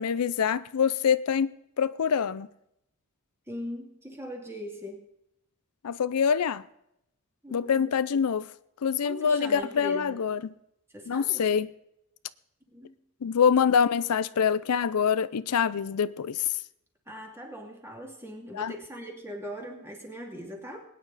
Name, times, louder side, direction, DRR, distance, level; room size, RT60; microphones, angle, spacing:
voice 1, 0.0-1.5 1.8-2.5 5.8-6.6 7.5-8.5 8.8-10.4 11.1-11.7 13.2-16.5 18.5-18.7, left 7 dB, 85° left, 0.5 m, -25 dB
voice 2, 3.5-5.0 7.4-7.9 9.0-10.2 10.9-11.5 12.7-13.0 17.1-20.8, equal, 10° right, 2.4 m, -40 dB
21.0 x 9.5 x 4.1 m
head